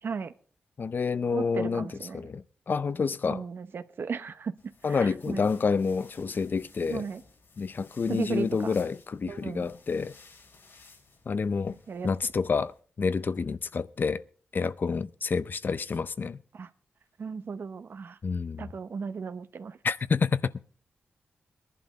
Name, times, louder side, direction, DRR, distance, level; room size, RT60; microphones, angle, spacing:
voice 1, 0.0-0.3 1.3-2.2 3.3-5.5 6.9-7.2 8.1-8.7 9.3-9.6 11.9-12.1 12.6-12.7 16.5-16.7 17.2-18.2 18.6-19.8, right 5 dB, 65° right, 0.8 m, -36 dB
voice 2, 0.8-1.9 2.1-3.4 4.8-7.1 7.6-10.1 11.3-11.8 12.0-12.7 13.0-14.2 14.5-16.4 18.2-18.7 19.8-20.5, left 5 dB, 55° left, 0.6 m, -28 dB
sound 1, 4.6-12.8, left 4 dB, 75° left, 3.0 m, -56 dB
20.0 x 11.0 x 4.0 m
cardioid pair, 70°, 4 cm